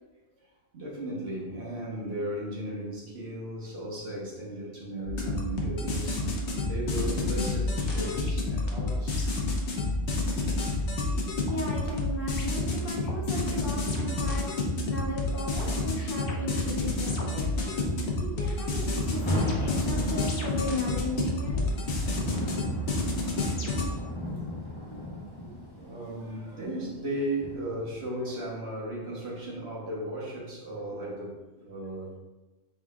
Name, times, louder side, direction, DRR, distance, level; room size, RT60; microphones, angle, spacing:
voice 1, 0.7-9.3 11.1-11.2 12.6-12.7 13.5-13.6 17.8-17.9 22.2-22.8 24.3-24.4 24.9-25.0 25.4-32.2, right 1 dB, 75° right, -5 dB, 1.4 m, -36 dB
sound 1, 5.1-23.9, left 2 dB, 90° left, 1.1 m, -29 dB
voice 2, 11.5-14.5 14.9-17.5 18.2-21.7, left 2 dB, 55° left, -3 dB, 1.3 m, -36 dB
Rain, 19.0-28.0, left 1 dB, 30° left, 0.8 m, -36 dB
4.6 x 4.0 x 2.4 m, 1.1 s
omnidirectional pair, 1.1 m